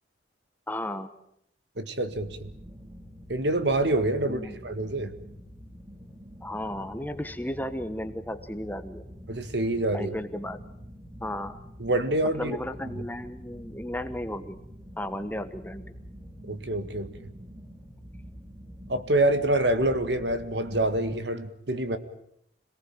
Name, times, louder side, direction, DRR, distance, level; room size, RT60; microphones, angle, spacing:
voice 1, 0.7-1.1 4.3-4.5 6.4-9.0 9.9-10.6 11.2-11.6 12.4-14.6 15.0-15.9, left 1 dB, 10° left, 9 dB, 1.2 m, -34 dB
voice 2, 1.8-2.5 3.3-5.1 9.3-10.2 11.8-12.6 13.0-13.1 16.5-17.1 18.9-22.0, right 1 dB, 65° right, 10 dB, 1.8 m, -26 dB
sound 1, 2.1-21.2, equal, 20° right, 3.1 m, -46 dB
26.5 x 18.5 x 9.0 m, 0.74 s
head